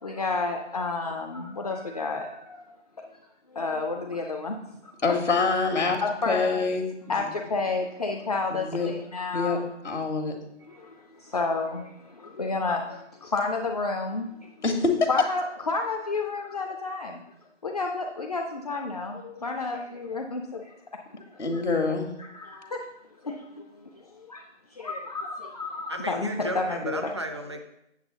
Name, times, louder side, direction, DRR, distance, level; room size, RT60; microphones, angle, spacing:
voice 1, 0.0-2.7 3.0-3.2 3.5-5.2 6.0-6.6 7.1-9.6 10.6-14.5 15.1-17.2 17.6-20.8 21.1-21.6 22.2-22.8 23.2-27.1, left 3 dB, 35° left, 2 dB, 0.5 m, -31 dB
voice 2, 5.0-6.9 8.5-8.9 9.3-10.4 14.6-15.0 21.4-22.1, left 4 dB, 75° left, 2 dB, 1.5 m, -26 dB
voice 3, 25.9-27.6, right 1 dB, 25° right, 6 dB, 0.4 m, -34 dB
8.1 x 7.4 x 3.9 m, 0.82 s
figure-of-eight pair, 150°, 36 cm